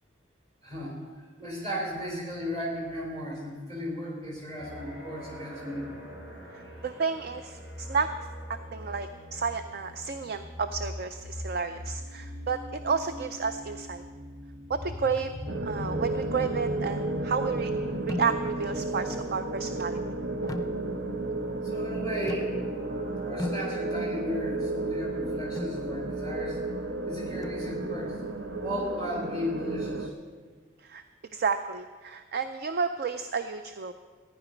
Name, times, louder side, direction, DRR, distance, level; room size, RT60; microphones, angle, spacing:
voice 1, 0.6-1.0 1.4-6.0 21.6-22.6 23.2-26.6 26.8-28.2 28.6-30.1, equal, 35° right, -1 dB, 3.8 m, -35 dB
sound 1, 4.6-23.6, left 1 dB, 85° right, 3.8 m, -41 dB
voice 2, 6.8-8.1 8.7-14.0 14.7-15.3 15.6-17.7 18.0-20.0 20.4-20.5 30.8-31.0 31.3-33.9, right 5 dB, 50° right, 10 dB, 0.4 m, -31 dB
sound 2, 15.5-30.1, right 2 dB, 65° right, 0.8 m, -33 dB
sound 3, 18.1-18.7 20.5-21.2 22.3-22.9 23.4-24.2 25.6-25.9 27.4-28.0, left 1 dB, 20° left, 0.5 m, -38 dB
14.5 x 10.0 x 5.1 m, 1.5 s
head